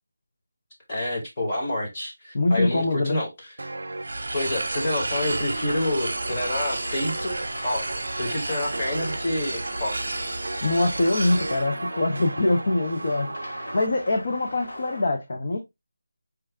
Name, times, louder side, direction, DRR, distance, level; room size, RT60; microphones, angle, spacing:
voice 1, 0.9-3.6 4.3-7.4 7.6-7.9 8.2-10.2, left 1 dB, 15° left, 0.9 m, -28 dB
voice 2, 2.3-3.2 10.6-13.3 13.7-15.6, left 2 dB, 35° left, 0.5 m, -23 dB
sound 1, 3.6-13.9, right 2 dB, 75° right, 0.4 m, -36 dB
sound 2, 4.0-11.7, right 2 dB, 55° right, 0.8 m, -32 dB
sound 3, 5.6-15.0, left 1 dB, 65° left, 1.9 m, -41 dB
4.5 x 2.4 x 3.3 m
figure-of-eight pair, 180°, 0 cm